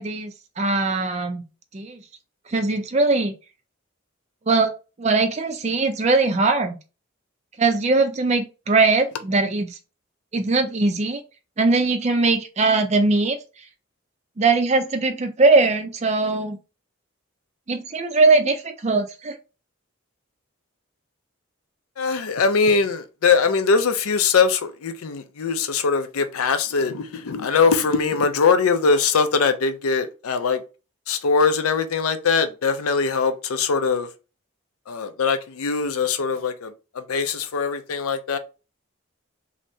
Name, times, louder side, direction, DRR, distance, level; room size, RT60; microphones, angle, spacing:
voice 1, 0.0-1.4 1.7-2.0 2.5-3.3 4.5-4.7 5.0-6.8 7.6-9.8 10.3-11.2 11.6-13.4 14.4-16.6 17.7-19.3, right 3 dB, 30° right, 0.4 m, -20 dB
voice 2, 22.0-30.6 31.1-34.1 34.9-38.4, left 5 dB, 90° left, 0.5 m, -21 dB
3.2 x 2.7 x 2.7 m
head